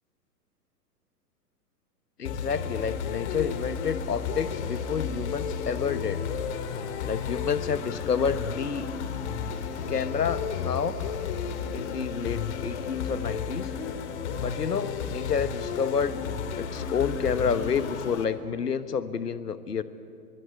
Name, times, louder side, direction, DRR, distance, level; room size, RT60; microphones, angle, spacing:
voice 1, 2.2-6.3 7.0-8.9 9.9-10.9 11.7-13.7 14.4-16.2 16.6-19.8, left 6 dB, 75° left, 13 dB, 1.4 m, -29 dB
sound 1, 2.2-18.2, left 6 dB, 45° left, 2.1 m, -33 dB
24.5 x 22.5 x 8.3 m, 2.4 s
figure-of-eight pair, 115°, 48 cm